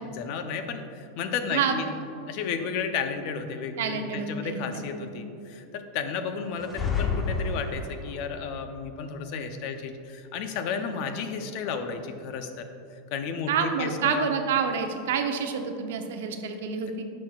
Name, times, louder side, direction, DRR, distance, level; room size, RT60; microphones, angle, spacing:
voice 1, 0.1-1.9 2.3-12.7 12.9-14.3, left 6 dB, 55° left, 7 dB, 0.6 m, -33 dB
voice 2, 3.8-5.1 13.5-17.0, right 6 dB, 80° right, 6 dB, 0.7 m, -28 dB
sound 1, 6.5-8.2, left 5 dB, 15° left, 0.8 m, -29 dB
10.5 x 6.2 x 2.4 m, 2.7 s
supercardioid pair, 145°, 0 cm